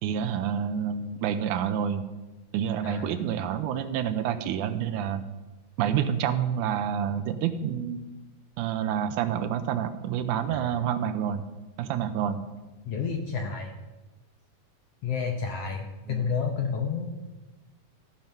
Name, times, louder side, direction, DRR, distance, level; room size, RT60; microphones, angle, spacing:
voice 1, 0.0-2.0 2.5-5.2 5.8-8.0 8.6-11.5 11.8-12.4 16.1-16.2, right 9 dB, 80° right, 10 dB, 2.0 m, -28 dB
voice 2, 2.8-3.2 10.5-10.8 12.8-13.7 15.0-17.1, left 6 dB, 70° left, 2 dB, 1.5 m, -30 dB
14.5 x 6.0 x 5.3 m, 1.1 s
omnidirectional pair, 3.7 m